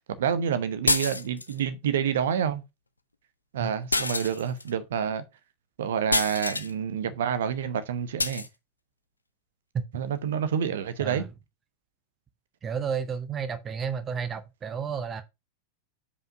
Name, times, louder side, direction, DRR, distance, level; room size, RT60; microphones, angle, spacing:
voice 1, 0.2-2.6 3.5-5.2 5.8-8.5 9.9-11.3, right 8 dB, 60° right, 0.9 m, -28 dB
sound 1, 0.9-1.6 3.9-4.7 6.1-6.7 8.2-8.5, left 3 dB, 80° left, 0.5 m, -27 dB
voice 2, 11.0-11.3 12.6-15.2, right 6 dB, 25° right, 0.8 m, -31 dB
5.2 x 4.8 x 5.8 m
figure-of-eight pair, 90°, 0 cm